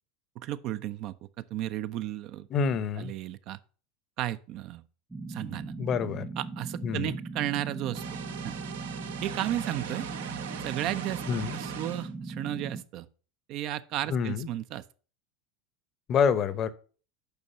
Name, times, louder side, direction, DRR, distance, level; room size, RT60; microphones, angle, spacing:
voice 1, 0.4-2.5 3.0-3.6 4.2-4.8 5.3-5.7 6.4-8.0 8.4-8.5 9.2-10.1 10.6-11.2 11.5-13.1 13.5-14.8, right 13 dB, 50° right, 0.5 m, -34 dB
voice 2, 2.5-3.1 5.8-6.3 6.8-7.1 11.3-11.6 14.1-14.5 16.1-16.7, left 6 dB, 40° left, 0.8 m, -27 dB
sound 1, 5.1-12.8, right 3 dB, 10° right, 0.7 m, -39 dB
sound 2, 7.9-12.1, right 8 dB, 70° right, 0.8 m, -40 dB
6.9 x 5.2 x 5.8 m
figure-of-eight pair, 80°, 0 cm